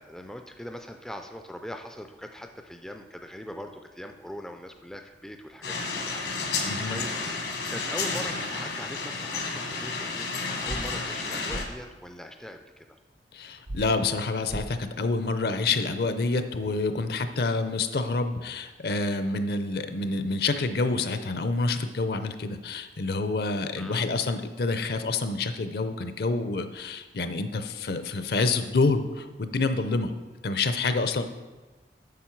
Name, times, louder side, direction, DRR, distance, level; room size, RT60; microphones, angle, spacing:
voice 1, 0.0-7.1 7.7-12.9 23.8-24.1, equal, 5° left, 5 dB, 0.3 m, -41 dB
sound 1, 5.6-11.6, left 4 dB, 75° left, 1.3 m, -31 dB
voice 2, 6.6-7.0 13.3-30.1 30.4-31.2, left 3 dB, 60° left, 9 dB, 0.5 m, -27 dB
sound 2, 10.7-10.8 11.5-11.6 13.7-13.8 14.5-14.6, right 1 dB, 80° right, 0.7 m, -34 dB
8.4 x 6.2 x 4.5 m, 1.2 s
head